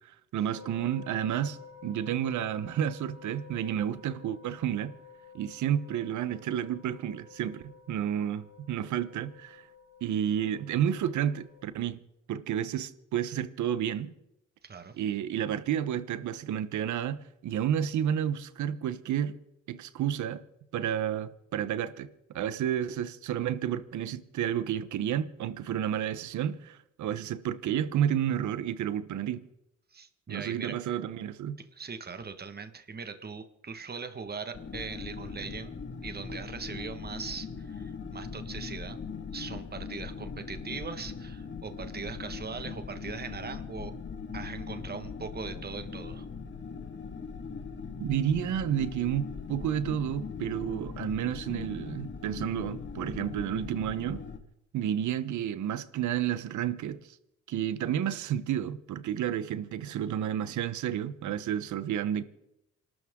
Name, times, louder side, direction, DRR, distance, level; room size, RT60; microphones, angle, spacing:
voice 1, 0.1-1.6 1.8-4.9 5.3-9.6 10.0-12.0 12.3-14.1 15.0-19.4 19.7-20.4 20.7-22.1 22.3-29.4 30.3-31.6 48.0-54.2 54.7-57.2 57.5-62.2, right 10 dB, 75° right, 1.1 m, -31 dB
sound 1, 0.5-11.7, left 6 dB, 85° left, 2.2 m, -52 dB
voice 2, 14.6-15.0 29.9-31.0 31.6-35.7 36.0-39.0 39.3-43.9 44.3-46.3, right 5 dB, 30° right, 1.7 m, -40 dB
sound 2, 34.5-54.4, left 5 dB, 40° left, 2.2 m, -40 dB
28.0 x 13.0 x 3.8 m
cardioid pair, 90°, 30 cm